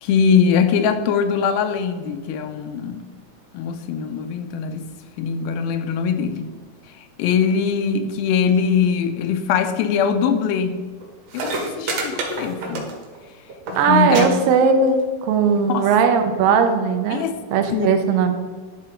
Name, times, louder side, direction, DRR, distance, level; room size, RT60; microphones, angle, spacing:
voice 1, 0.0-3.0 3.5-4.9 5.2-6.5 7.0-10.8 11.3-12.9 13.7-14.3 15.7-15.9 17.1-17.4 17.7-17.9, left 6 dB, 90° left, 8 dB, 2.5 m, -21 dB
sound 1, 11.0-11.1 11.3-13.2 13.5-13.8 14.1-14.2 14.5-15.0 15.8-15.9, right 3 dB, 55° right, 2.0 m, -27 dB
voice 2, 13.7-17.2 17.5-18.3, right 5 dB, 80° right, 6 dB, 2.5 m, -18 dB
11.0 x 3.8 x 4.4 m, 1.5 s
omnidirectional pair, 4.2 m